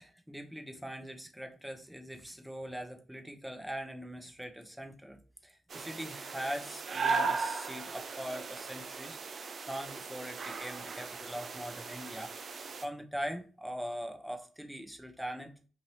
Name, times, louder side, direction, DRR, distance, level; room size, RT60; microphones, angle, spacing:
voice 1, 0.0-12.3 12.8-15.7, equal, 5° right, 4 dB, 0.8 m, -42 dB
sound 1, 5.7-12.9, right 4 dB, 50° right, 0.5 m, -37 dB
3.1 x 2.6 x 3.0 m, 0.37 s
hypercardioid pair, 45°, 0 cm